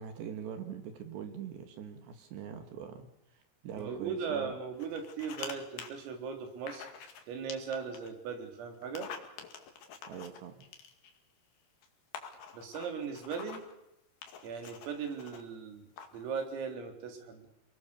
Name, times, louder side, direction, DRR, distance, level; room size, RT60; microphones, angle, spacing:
voice 1, 0.0-4.6 10.1-10.6, right 8 dB, 65° right, 7 dB, 3.9 m, -43 dB
voice 2, 3.8-6.9 7.3-9.1 12.5-13.6 14.4-15.9 16.1-17.5, right 6 dB, 80° right, 5 dB, 6.0 m, -38 dB
sound 1, 4.8-5.5 5.8-5.9 6.7-7.2 7.5-8.1 8.8-11.2 11.8-11.9 12.1-13.7 14.2-15.4 16.0-16.2, left 6 dB, 55° left, 3.7 m, -46 dB
29.0 x 20.5 x 7.0 m, 0.85 s
omnidirectional pair, 5.9 m